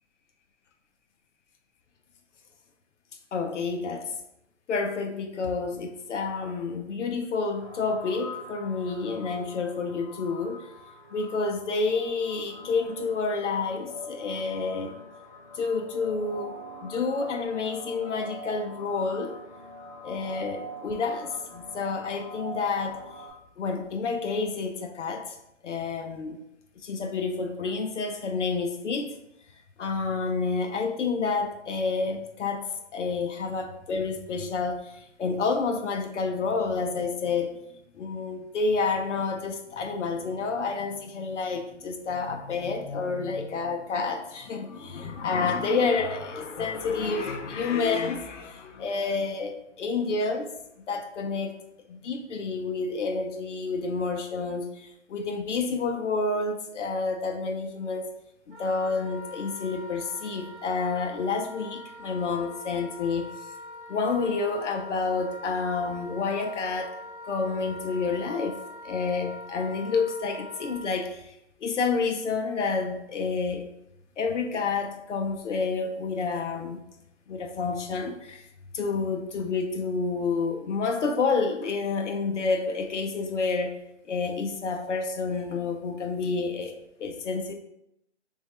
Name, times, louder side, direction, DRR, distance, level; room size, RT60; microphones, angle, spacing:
voice 1, 3.3-4.1 4.7-10.6 11.1-14.9 15.5-16.5 16.8-19.3 20.0-23.0 23.6-25.4 25.6-26.4 26.8-29.1 29.8-32.7 32.9-37.6 37.9-50.5 50.9-51.5 51.9-58.1 58.5-63.2 63.9-67.0 67.2-68.6 68.8-71.3 71.6-73.7 74.2-76.8 77.3-78.4 78.7-83.8 84.0-87.5, left 4 dB, 80° left, 4 dB, 0.7 m, -29 dB
sound 1, 7.5-23.3, left 1 dB, 35° left, 0.8 m, -44 dB
Wind instrument woodwind instrument, 58.5-71.0, left 2 dB, 50° right, 1.4 m, -43 dB
3.5 x 3.1 x 3.2 m, 0.80 s
hypercardioid pair, 150°, 36 cm